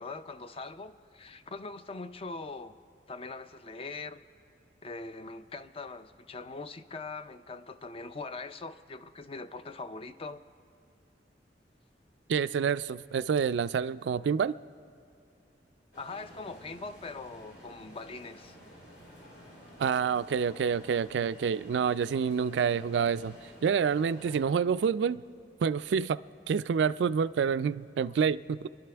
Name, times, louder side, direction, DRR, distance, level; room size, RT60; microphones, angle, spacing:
voice 1, 0.0-2.7 3.1-4.2 4.8-10.4 16.0-18.6, left 3 dB, 35° left, 0.5 m, -42 dB
voice 2, 12.3-14.5 19.8-23.4 23.6-25.2 25.6-26.2 26.5-28.7, right 6 dB, 75° right, 0.3 m, -28 dB
sound 1, 15.9-24.4, equal, 75° left, 4.6 m, -52 dB
29.0 x 11.5 x 3.4 m
head